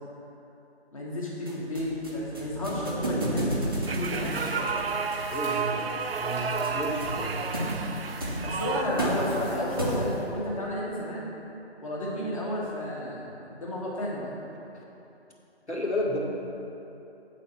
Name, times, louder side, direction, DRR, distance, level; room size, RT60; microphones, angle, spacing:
voice 1, 0.9-4.7 7.2-7.3 8.4-11.3 11.8-14.3, left 1 dB, 30° left, -5 dB, 1.5 m, -32 dB
sound 1, 1.5-10.3, right 1 dB, 20° right, 0.7 m, -33 dB
sound 2, 3.6-10.8, equal, 15° left, 1.0 m, -48 dB
sound 3, 3.9-8.8, right 5 dB, 60° right, 0.5 m, -31 dB
voice 2, 5.3-5.9 6.2-7.4 15.7-16.2, left 1 dB, 85° left, -3 dB, 1.9 m, -32 dB
8.2 x 4.1 x 7.0 m, 2.9 s
figure-of-eight pair, 160°, 33 cm